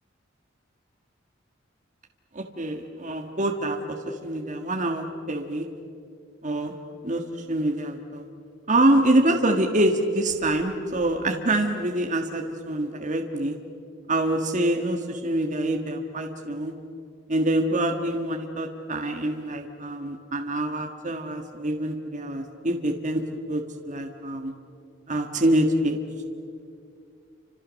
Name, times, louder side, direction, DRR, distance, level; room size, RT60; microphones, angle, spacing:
voice 1, 2.3-5.6 6.4-6.7 7.0-7.2 7.5-8.2 8.7-13.6 14.1-16.7 17.3-24.5 25.1-26.0, right 1 dB, 40° right, 3 dB, 1.7 m, -25 dB
29.5 x 27.0 x 6.4 m, 2.4 s
head